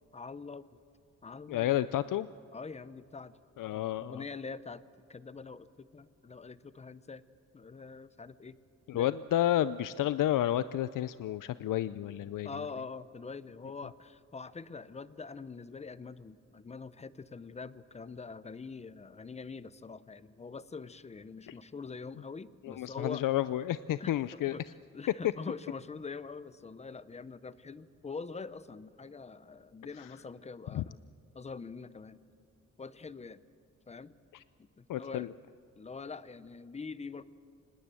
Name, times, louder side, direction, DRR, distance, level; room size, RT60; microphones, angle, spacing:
voice 1, 0.1-0.8 1.2-1.7 2.5-3.4 3.7-4.8 5.1-7.2 7.5-8.6 8.9-9.1 12.4-23.2 24.0-31.0 31.3-32.2 32.8-33.4 33.9-34.1 34.6-35.3 35.8-37.2, left 4 dB, 20° left, 16 dB, 0.6 m, -44 dB
voice 2, 1.5-2.3 3.6-4.2 8.9-12.5 22.6-24.6 30.7-30.8 34.3-34.4 34.9-35.3, left 12 dB, 85° left, 15 dB, 0.5 m, -31 dB
25.5 x 19.5 x 7.6 m, 2.8 s
wide cardioid pair, 170°, 31 cm